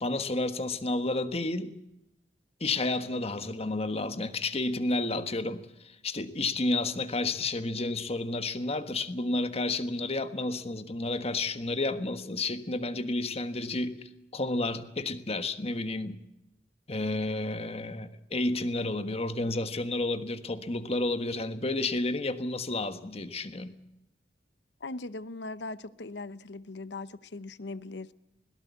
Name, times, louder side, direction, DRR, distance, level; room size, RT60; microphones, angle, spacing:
voice 1, 0.0-1.7 2.6-16.2 16.9-23.8, left 2 dB, 35° left, 1.4 m, -31 dB
voice 2, 24.8-28.1, left 2 dB, 75° left, 0.8 m, -39 dB
21.0 x 18.0 x 8.3 m
head